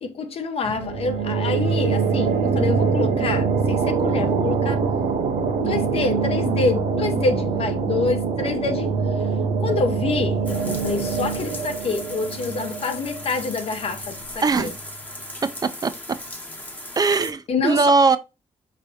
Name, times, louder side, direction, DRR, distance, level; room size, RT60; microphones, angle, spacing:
voice 1, 0.0-4.8 5.6-8.9 9.6-14.2 14.6-14.7 17.5-17.9, left 4 dB, 55° left, 0.8 m, -26 dB
sound 1, 0.6-14.0, right 5 dB, 85° right, 0.7 m, -24 dB
sound 2, 10.5-17.3, left 1 dB, 15° left, 0.8 m, -38 dB
voice 2, 14.4-14.7 15.8-15.9 17.0-18.2, right 4 dB, 35° right, 0.4 m, -19 dB
5.1 x 3.2 x 2.7 m
cardioid pair, 120°, 12 cm